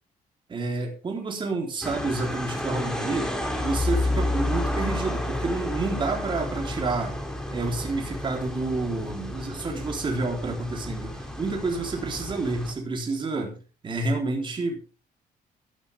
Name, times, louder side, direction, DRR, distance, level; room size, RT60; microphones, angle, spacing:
voice 1, 0.5-3.3 3.6-7.2 7.5-13.6 13.8-14.8, right 3 dB, 30° right, 1 dB, 3.9 m, -29 dB
sound 1, 1.8-12.7, left 1 dB, 5° left, 3.2 m, -31 dB
15.5 x 11.5 x 3.6 m, 0.34 s
cardioid pair, 140°, 16 cm